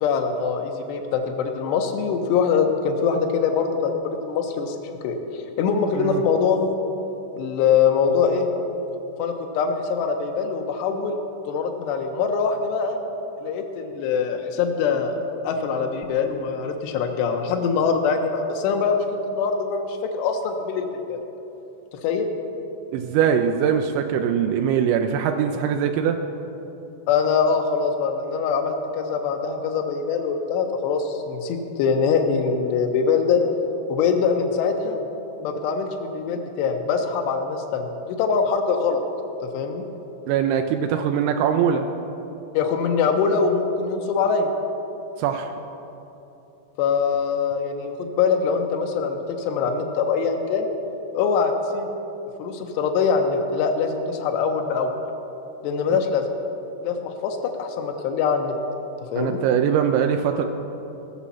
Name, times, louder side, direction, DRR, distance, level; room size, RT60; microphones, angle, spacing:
voice 1, 0.0-3.9 4.2-4.8 5.0-6.7 7.4-8.5 9.2-11.2 11.5-13.0 13.4-15.2 15.4-21.2 22.0-22.3 27.1-33.4 33.9-35.0 35.4-39.0 39.5-39.8 42.5-44.5 46.8-50.7 51.1-51.9 52.4-54.9 55.6-56.3 56.8-58.5 59.1-59.4, left 5 dB, 80° left, 4 dB, 2.5 m, -23 dB
voice 2, 22.9-26.2 40.3-41.9 45.2-45.5 55.9-56.0 59.2-60.5, right 8 dB, 90° right, 6 dB, 2.6 m, -22 dB
18.0 x 7.2 x 5.6 m, 3.0 s
omnidirectional pair, 5.8 m